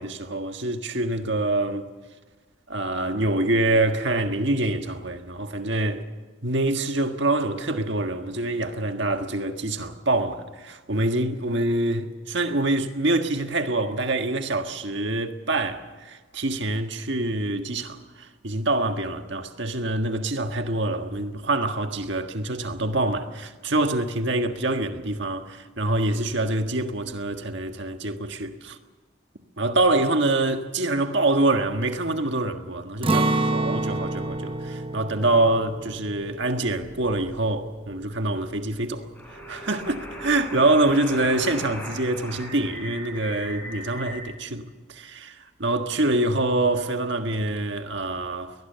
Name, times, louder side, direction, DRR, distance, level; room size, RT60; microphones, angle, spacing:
voice 1, 0.0-1.8 2.7-6.0 6.4-28.8 29.6-48.5, right 2 dB, 55° right, 1.6 m, -25 dB
Acoustic guitar, 33.0-38.9 39.2-39.4 39.9-40.4, right 2 dB, 25° right, 0.8 m, -29 dB
sound 1, 39.2-44.2, equal, 10° left, 5.4 m, -38 dB
22.5 x 19.5 x 6.9 m
head